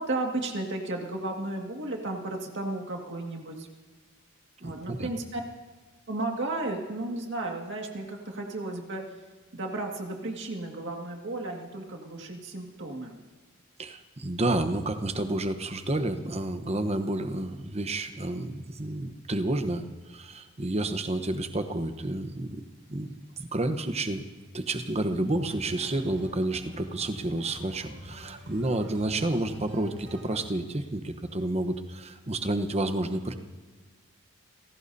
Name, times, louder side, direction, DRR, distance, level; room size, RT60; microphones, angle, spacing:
voice 1, 0.0-3.7 4.6-5.4 6.1-9.0 9.5-13.2, right 2 dB, 55° right, 1 dB, 2.0 m, -34 dB
voice 2, 4.6-5.1 13.8-22.6 22.9-24.2 24.5-33.3, right 2 dB, 30° right, 8 dB, 1.0 m, -30 dB
sound 1, 25.4-30.5, equal, 75° right, 4.8 m, -47 dB
29.0 x 17.0 x 2.8 m, 1.4 s
head